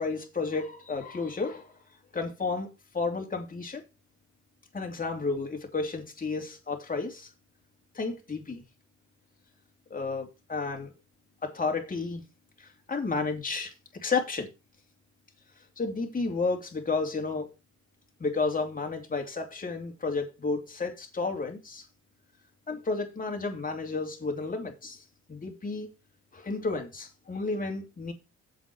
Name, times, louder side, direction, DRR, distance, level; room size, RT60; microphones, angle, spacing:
voice 1, 0.0-1.8 2.1-2.7 2.9-3.8 4.7-7.3 7.9-8.6 9.9-10.9 11.4-12.2 12.6-13.7 14.0-14.5 15.8-17.5 18.2-21.8 22.7-25.0 25.3-25.9 26.3-28.1, left 4 dB, 30° left, 3.0 m, -32 dB
7.8 x 6.2 x 6.3 m
cardioid pair, 90°, 30 cm